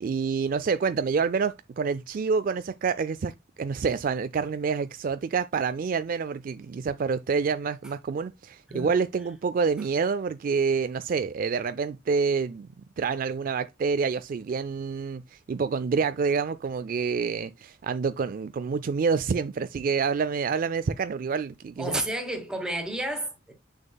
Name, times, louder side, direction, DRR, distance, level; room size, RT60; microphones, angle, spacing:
voice 1, 0.0-3.3 3.6-12.7 13.0-22.0, right 5 dB, 50° right, 0.3 m, -27 dB
voice 2, 21.8-23.5, right 1 dB, 5° right, 1.8 m, -31 dB
7.2 x 6.5 x 2.2 m
head